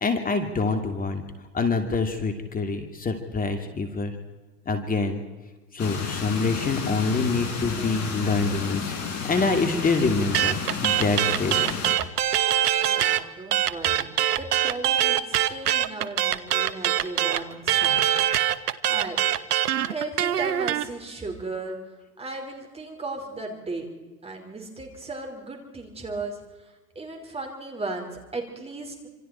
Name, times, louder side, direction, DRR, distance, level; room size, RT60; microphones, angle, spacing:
voice 1, 0.0-1.2 1.5-4.1 4.7-5.2 5.7-8.9 9.3-11.6, left 3 dB, 20° left, 6 dB, 2.6 m, -25 dB
sound 1, 5.8-12.0, left 5 dB, 35° left, 5.4 m, -32 dB
sound 2, 10.3-13.2 13.5-20.8, right 11 dB, 75° right, 1.3 m, -23 dB
voice 2, 12.8-18.1 18.9-19.2 19.9-21.8 22.2-23.9 24.2-26.4 26.9-29.1, right 3 dB, 10° right, 3 dB, 5.1 m, -36 dB
27.0 x 26.0 x 4.5 m, 1.2 s
hypercardioid pair, 105°, 47 cm